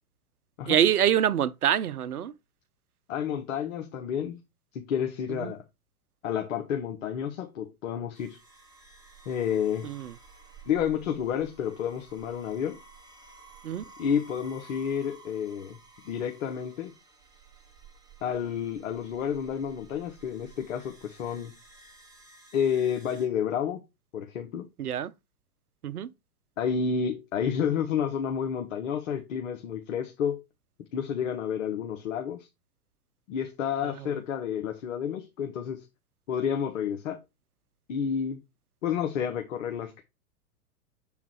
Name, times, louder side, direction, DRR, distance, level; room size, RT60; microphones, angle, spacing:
voice 1, 0.7-2.3 5.3-5.5 9.8-10.1 13.6-13.8 24.8-25.1 25.8-26.1, right 10 dB, 70° right, 0.7 m, -25 dB
voice 2, 3.1-4.4 4.7-5.6 6.2-8.4 9.3-9.9 10.7-12.8 14.0-15.8 16.0-16.9 18.2-21.5 22.5-23.8 24.1-24.7 26.6-30.4 30.9-32.5 33.3-35.8 36.3-37.2 37.9-38.4 38.8-40.0, left 8 dB, 55° left, 1.1 m, -30 dB
sound 1, 8.1-23.3, right 4 dB, 10° right, 1.7 m, -53 dB
7.2 x 4.0 x 4.4 m
figure-of-eight pair, 105°, 46 cm